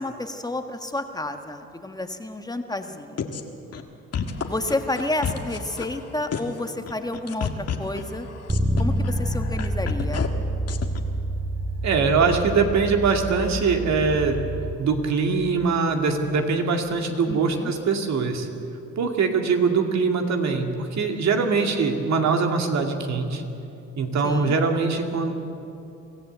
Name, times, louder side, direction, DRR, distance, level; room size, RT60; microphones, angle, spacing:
voice 1, 0.0-3.3 4.4-8.3 8.8-10.3 17.3-17.7 21.5-21.7 24.2-24.6, left 2 dB, 15° left, 6 dB, 1.4 m, -30 dB
sound 1, 3.2-3.4 3.7-3.8 4.1-6.0 6.3-6.6 6.9-10.3 10.7-11.0, left 7 dB, 55° left, 1.7 m, -30 dB
Bass guitar, 8.5-14.7, right 1 dB, 25° right, 2.0 m, -28 dB
sound 2, 8.8-17.4, right 1 dB, 80° right, 6.8 m, -42 dB
voice 2, 11.8-14.4 14.8-18.5 19.0-23.4 24.0-25.5, right 4 dB, 65° right, 3 dB, 2.4 m, -22 dB
24.5 x 15.0 x 8.1 m, 2.8 s
cardioid pair, 90°, 30 cm